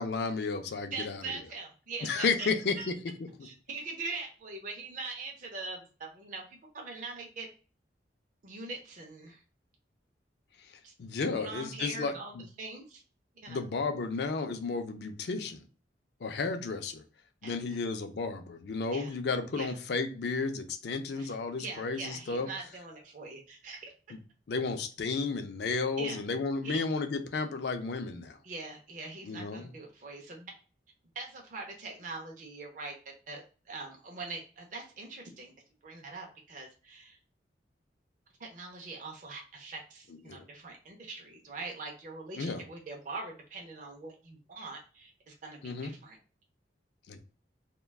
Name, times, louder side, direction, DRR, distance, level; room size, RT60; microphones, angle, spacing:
voice 1, 0.0-1.2 2.0-2.8 3.4-3.5 11.0-12.4 13.5-15.6 16.2-17.0 17.4-22.5 24.5-28.4 29.2-29.7 40.3-40.4 42.4-42.6 45.6-45.9 47.1-47.2, left 4 dB, 65° left, 0.4 m, -33 dB
voice 2, 0.9-2.5 2.8-2.9 3.4-7.5 8.4-9.4 10.8-10.9 11.3-13.0 13.4-13.6 17.4-17.8 18.9-19.2 19.6-19.7 21.2-23.9 26.0-26.2 26.6-26.9 28.4-30.5 31.2-33.0 33.3-35.5 35.8-37.2 38.4-46.2, right 3 dB, 45° right, 0.5 m, -42 dB
2.3 x 2.2 x 3.3 m
head